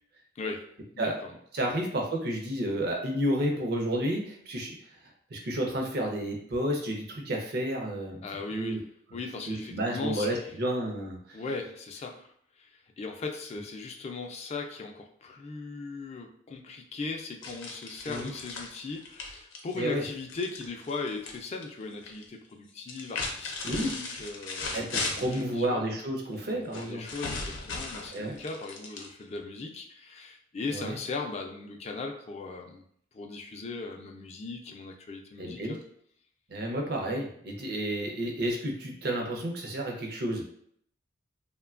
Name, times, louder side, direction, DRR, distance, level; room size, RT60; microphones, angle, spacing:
voice 1, 0.4-0.7 0.9-1.3 1.6-1.8 8.2-10.3 11.3-24.9 25.2-25.9 26.5-32.8 33.1-35.8, left 3 dB, 35° left, 3 dB, 0.3 m, -38 dB
voice 2, 1.5-4.7 5.3-8.2 8.5-8.8 9.5-11.4 18.1-18.3 19.8-20.0 23.6-23.9 24.7-27.0 28.1-28.3 30.7-31.0 35.4-35.8 36.5-40.4, right 1 dB, 55° right, 1 dB, 0.6 m, -31 dB
sound 1, 17.4-21.4 21.6-22.2 22.8-25.5 26.7-29.4, left 3 dB, 85° left, 0.6 m, -37 dB
3.0 x 2.2 x 2.4 m, 0.65 s
head